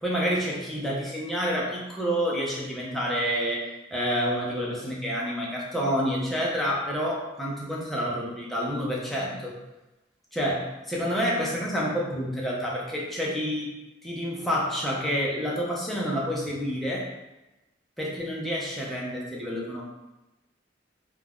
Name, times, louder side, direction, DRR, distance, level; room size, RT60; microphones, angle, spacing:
voice 1, 0.0-3.7 3.9-9.6 10.3-13.7 14.0-17.1 18.0-19.8, equal, ahead, -5 dB, 0.5 m, -28 dB
2.5 x 2.2 x 3.4 m, 1.0 s
head